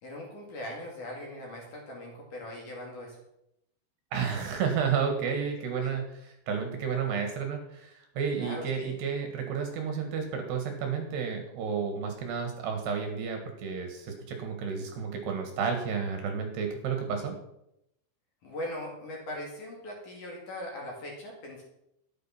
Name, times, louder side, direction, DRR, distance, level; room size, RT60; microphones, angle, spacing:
voice 1, 0.0-3.2 5.8-6.0 8.4-9.0 18.4-21.6, left 1 dB, 45° left, -1 dB, 3.3 m, -40 dB
voice 2, 4.1-17.4, right 6 dB, 65° right, 4 dB, 3.3 m, -31 dB
13.5 x 9.1 x 5.9 m, 0.81 s
omnidirectional pair, 5.8 m